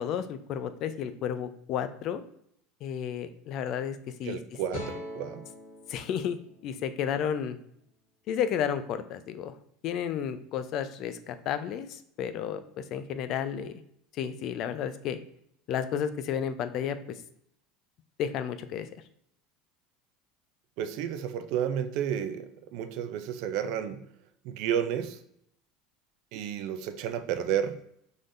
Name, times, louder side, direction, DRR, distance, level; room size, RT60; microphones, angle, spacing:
voice 1, 0.0-2.2 2.8-4.4 5.9-7.6 8.3-9.6 9.8-13.8 14.1-15.2 15.7-17.2 18.2-18.9, left 8 dB, 55° left, 11 dB, 0.4 m, -32 dB
voice 2, 4.2-5.4 20.8-24.0 24.4-25.2 26.3-27.8, right 9 dB, 65° right, 9 dB, 0.5 m, -31 dB
sound 1, 4.7-7.9, left 1 dB, 85° left, 1.6 m, -43 dB
5.0 x 3.9 x 2.6 m, 0.70 s
hypercardioid pair, 90°, 0 cm